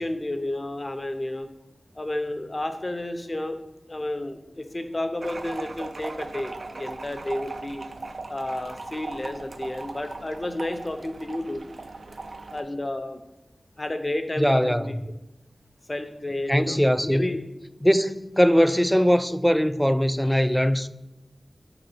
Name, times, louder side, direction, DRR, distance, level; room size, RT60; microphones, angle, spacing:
voice 1, 0.0-1.5 1.9-3.6 3.9-7.8 8.3-11.6 12.5-13.2 13.8-14.9 15.9-16.8 17.1-17.4, left 1 dB, 35° left, 0.7 m, -31 dB
sound 1, 5.2-12.6, right 3 dB, 65° right, 0.4 m, -38 dB
voice 2, 14.4-15.0 16.5-17.3 17.8-20.9, equal, 5° left, 0.3 m, -21 dB
4.9 x 4.0 x 5.5 m
wide cardioid pair, 50°, 0 cm